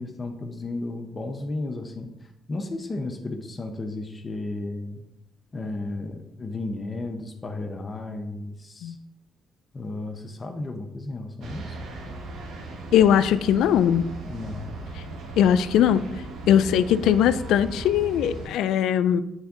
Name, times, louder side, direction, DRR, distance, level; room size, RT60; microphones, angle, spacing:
voice 1, 0.0-2.1 2.5-5.0 5.5-8.9 9.7-11.7 14.2-14.7, left 2 dB, 30° left, 4 dB, 0.7 m, -33 dB
sound 1, 11.4-18.5, right 2 dB, 75° right, 1.0 m, -37 dB
voice 2, 12.9-14.0 15.4-16.0 16.5-19.2, left 9 dB, 85° left, 13 dB, 0.3 m, -20 dB
8.9 x 3.5 x 3.7 m, 0.88 s
cardioid pair, 90°, 0 cm